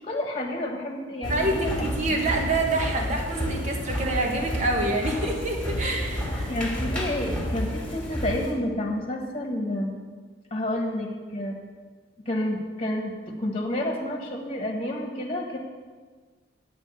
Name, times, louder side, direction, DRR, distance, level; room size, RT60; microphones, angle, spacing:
voice 1, 0.0-2.2 6.5-9.9 10.5-11.6 12.2-15.6, left 1 dB, 30° left, 2 dB, 1.4 m, -30 dB
sound 1, 1.2-8.5, equal, 5° left, 2.3 m, -30 dB
voice 2, 1.3-6.5, right 2 dB, 40° right, 1 dB, 1.5 m, -27 dB
9.9 x 5.0 x 8.1 m, 1.5 s
head